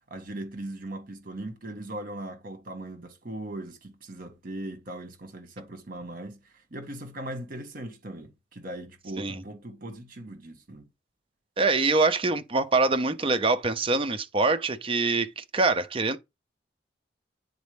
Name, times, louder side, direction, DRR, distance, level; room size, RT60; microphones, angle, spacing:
voice 1, 0.1-6.4 6.7-10.9, right 1 dB, 50° right, 1.5 m, -39 dB
voice 2, 11.6-16.2, right 3 dB, 30° right, 0.7 m, -24 dB
9.3 x 4.2 x 3.4 m
head